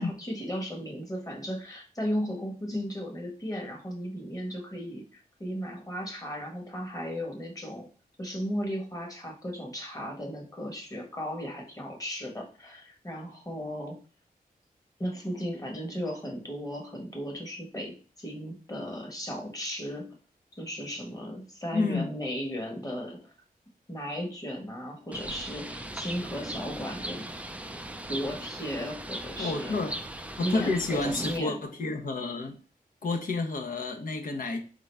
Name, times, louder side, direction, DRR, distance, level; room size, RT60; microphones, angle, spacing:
voice 1, 0.0-7.9 8.2-14.0 15.0-20.1 20.6-23.3 23.9-27.3 28.1-29.8 30.4-31.6, equal, 20° left, 1.3 m, -35 dB
voice 2, 21.7-22.1 29.4-30.0 30.4-32.6 33.0-34.6, left 3 dB, 60° left, 0.9 m, -30 dB
Bird, 25.1-31.4, right 1 dB, 10° right, 0.4 m, -38 dB
3.8 x 3.7 x 3.4 m
wide cardioid pair, 95°, 16 cm